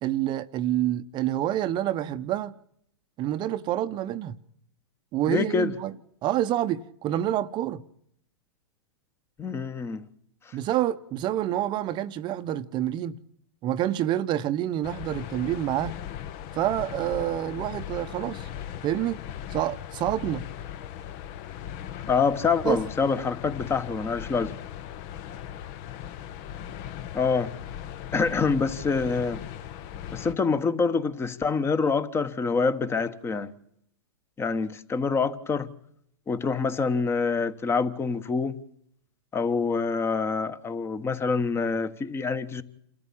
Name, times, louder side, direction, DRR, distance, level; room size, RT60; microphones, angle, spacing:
voice 1, 0.0-2.5 3.2-4.4 5.1-5.9 6.2-7.8 10.5-13.2 13.6-16.0 16.5-18.5 18.8-19.2 19.5-20.4 22.6-22.8, right 12 dB, 30° right, 0.9 m, -27 dB
voice 2, 5.3-5.7 9.4-10.0 10.5-10.6 22.1-24.5 27.1-27.5 28.1-29.4 30.1-33.5 34.4-35.7 36.3-38.5 39.3-42.6, left 5 dB, 15° left, 1.3 m, -26 dB
sound 1, 14.8-30.3, left 10 dB, 45° left, 1.1 m, -38 dB
28.0 x 14.0 x 8.7 m
hypercardioid pair, 130°, 15 cm